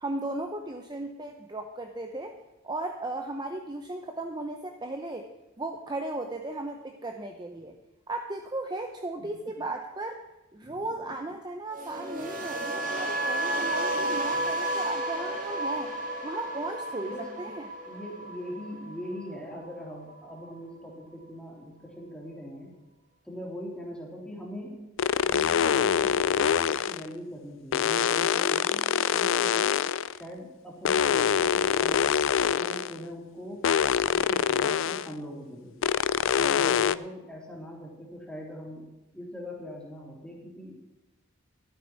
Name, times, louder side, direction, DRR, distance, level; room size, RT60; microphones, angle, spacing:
voice 1, 0.0-2.4 2.6-5.3 5.6-7.7 8.1-10.2 10.5-15.9 16.2-17.7, right 2 dB, 20° right, 4 dB, 0.7 m, -36 dB
sound 1, 11.7-19.8 20.1-20.5, right 1 dB, 40° right, 2.0 m, -32 dB
voice 2, 17.0-17.4 17.8-22.7 23.2-24.9 25.2-29.7 30.1-32.1 32.5-33.7 34.1-35.8 36.3-40.8, equal, 5° left, -3 dB, 3.1 m, -41 dB
sound 2, 25.0-27.1 27.7-30.2 30.8-33.0 33.6-35.1 35.8-36.9, left 8 dB, 60° left, 0.3 m, -25 dB
13.5 x 12.0 x 4.5 m, 1.0 s
head